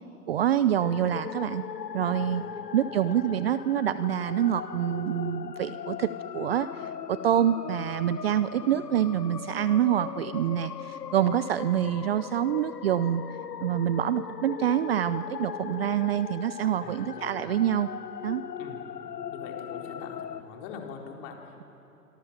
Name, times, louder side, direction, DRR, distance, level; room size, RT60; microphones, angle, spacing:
voice 1, 0.3-1.6 1.9-2.4 2.7-13.2 13.6-17.9 18.2-18.4, right 10 dB, 40° right, 15 dB, 0.6 m, -26 dB
sound 1, 0.8-20.4, left 8 dB, 80° left, 1.3 m, -39 dB
voice 2, 2.2-2.5 2.9-3.4 16.8-17.4 18.6-18.9 19.3-21.6, left 6 dB, 30° left, 1 dB, 4.0 m, -44 dB
25.5 x 25.5 x 7.3 m, 2.9 s
hypercardioid pair, 135°, 47 cm